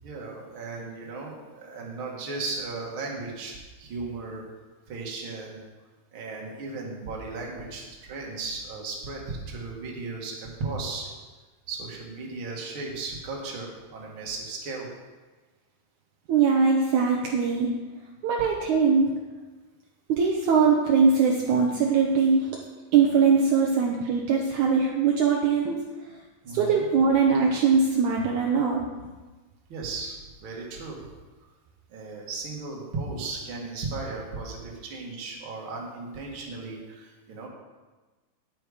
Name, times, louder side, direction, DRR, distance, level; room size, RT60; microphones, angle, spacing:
voice 1, 0.0-4.4 4.9-5.6 6.1-11.2 11.7-14.9 26.4-26.8 29.7-31.0 31.9-37.5, right 3 dB, 45° right, -2 dB, 2.3 m, -36 dB
voice 2, 16.3-17.8 18.2-19.1 20.1-22.5 22.9-25.8 26.5-28.8, right 5 dB, 70° right, 0 dB, 2.2 m, -21 dB
10.0 x 9.0 x 5.0 m, 1.3 s
omnidirectional pair, 3.8 m